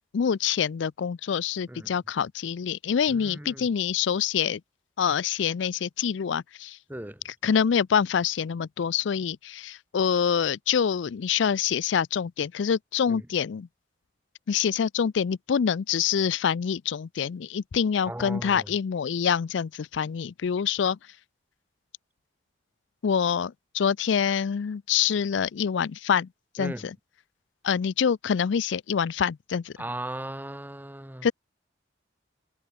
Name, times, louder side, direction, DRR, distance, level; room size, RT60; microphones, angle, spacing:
voice 1, 0.1-4.6 5.0-6.8 7.2-13.7 14.5-21.2 23.0-26.3 26.5-26.9 27.6-29.7 31.2-31.3, left 7 dB, 70° left, 0.4 m, -26 dB
voice 2, 3.1-3.7 6.9-7.2 13.1-13.2 18.1-18.7 26.6-26.9 29.8-31.3, right 1 dB, 10° right, 1.7 m, -37 dB
head